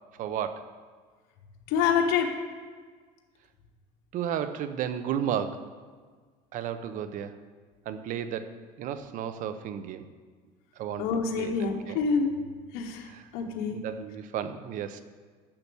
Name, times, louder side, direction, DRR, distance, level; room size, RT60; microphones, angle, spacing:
voice 1, 0.2-0.7 4.1-5.7 6.5-7.4 7.9-8.5 8.8-10.1 10.8-11.1 11.4-12.0 13.0-13.3 13.7-15.0, right 9 dB, 60° right, 11 dB, 0.8 m, -33 dB
voice 2, 1.7-2.3 11.0-12.4 12.7-13.8, left 6 dB, 85° left, 1 dB, 1.2 m, -27 dB
10.5 x 6.9 x 7.0 m, 1.5 s
cardioid pair, 130°, 15 cm